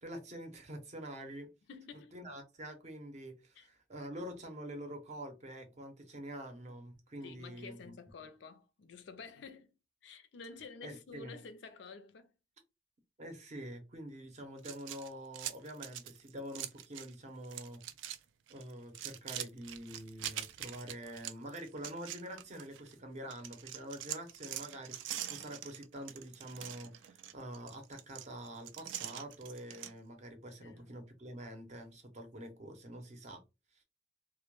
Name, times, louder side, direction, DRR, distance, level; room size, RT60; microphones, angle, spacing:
voice 1, 0.0-1.5 2.1-7.9 10.8-11.3 13.2-17.8 18.5-33.4, right 1 dB, 35° right, 0.6 m, -46 dB
voice 2, 1.7-2.1 3.5-3.7 4.2-4.4 7.2-9.7 10.0-12.3 30.6-31.0, left 4 dB, 65° left, 0.4 m, -50 dB
sound 1, 14.6-17.1 17.4-18.2 18.5-22.9 23.3-29.9, right 11 dB, 80° right, 0.3 m, -44 dB
2.1 x 2.1 x 2.9 m
head